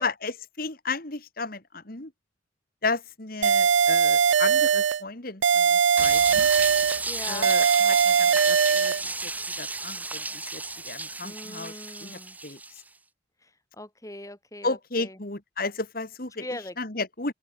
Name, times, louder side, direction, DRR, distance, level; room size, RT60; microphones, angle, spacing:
voice 1, 0.0-2.1 2.8-6.5 7.3-9.3 9.6-11.7 12.0-12.8 14.6-16.5 16.8-17.3, left 3 dB, 50° left, 2.5 m, -33 dB
sound 1, 3.4-5.0 5.4-7.0 7.4-9.0, right 7 dB, 75° right, 0.5 m, -20 dB
sound 2, 6.0-12.8, right 3 dB, 10° right, 1.1 m, -33 dB
voice 2, 7.0-7.5 11.2-12.4 13.4-15.2 16.4-16.8, left 1 dB, 15° left, 3.1 m, -40 dB
open air
head